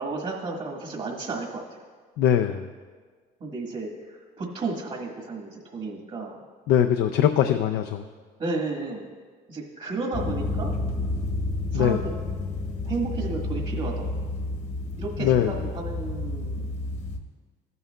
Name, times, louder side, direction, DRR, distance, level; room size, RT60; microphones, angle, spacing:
voice 1, 0.0-1.8 3.4-6.4 8.4-9.1 9.5-10.7 11.7-12.1 12.8-14.1 15.0-16.7, right 3 dB, 45° right, -1 dB, 1.4 m, -32 dB
voice 2, 2.2-2.7 6.7-8.0 11.7-12.0 15.2-15.6, left 10 dB, 85° left, 6 dB, 0.4 m, -22 dB
sound 1, 10.1-17.2, left 2 dB, 45° left, 1.0 m, -30 dB
14.0 x 9.4 x 2.2 m, 1.5 s
cardioid pair, 110°, 17 cm